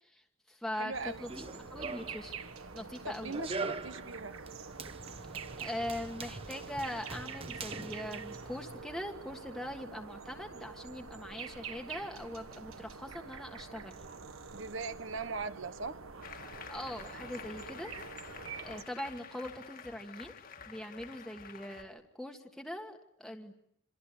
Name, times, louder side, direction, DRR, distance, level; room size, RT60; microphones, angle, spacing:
voice 1, 0.0-2.4 2.7-3.4 5.6-14.0 16.7-17.9 18.6-20.3 20.7-23.5, left 1 dB, ahead, 1.5 m, -42 dB
voice 2, 0.7-1.2 3.0-4.4 14.5-16.0, right 3 dB, 65° right, 1.2 m, -39 dB
sound 1, 0.9-18.8, right 5 dB, 85° right, 1.7 m, -46 dB
Run, 1.1-8.8, right 3 dB, 25° right, 1.1 m, -44 dB
Applause, 16.2-21.8, left 6 dB, 45° left, 1.8 m, -49 dB
27.0 x 26.0 x 8.2 m
head